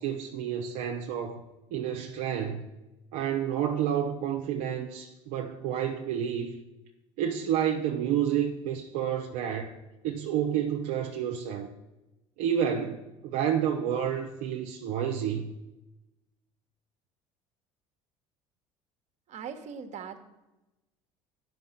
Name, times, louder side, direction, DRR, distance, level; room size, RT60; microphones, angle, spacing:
voice 1, 0.0-1.4 1.7-2.6 3.1-6.5 7.2-9.7 10.0-11.7 12.4-13.0 13.2-15.5, right 9 dB, 70° right, 1 dB, 0.9 m, -29 dB
voice 2, 19.3-20.2, right 7 dB, 55° right, 7 dB, 1.3 m, -40 dB
9.3 x 6.0 x 7.2 m, 1.0 s
hypercardioid pair, 70°, 15 cm